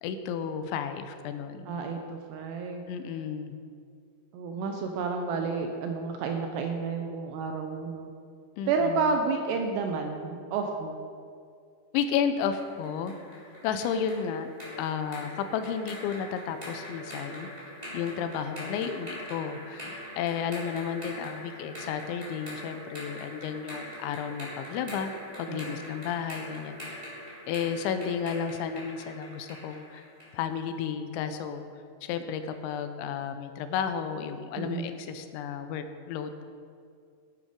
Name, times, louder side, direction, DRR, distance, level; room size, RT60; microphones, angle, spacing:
voice 1, 0.0-1.7 2.9-3.6 8.6-9.2 11.9-13.2 13.6-14.5 14.8-17.5 17.9-25.1 25.4-27.0 27.5-30.0 30.3-31.6 32.0-36.4, left 7 dB, 85° left, 8 dB, 2.9 m, -32 dB
voice 2, 1.7-2.9 4.3-8.1 8.7-11.0 25.5-25.8 34.6-34.9, right 4 dB, 80° right, 4 dB, 2.6 m, -30 dB
sound 1, 12.6-30.4, equal, 10° right, 2.3 m, -43 dB
11.5 x 8.7 x 5.1 m, 2.3 s
omnidirectional pair, 5.4 m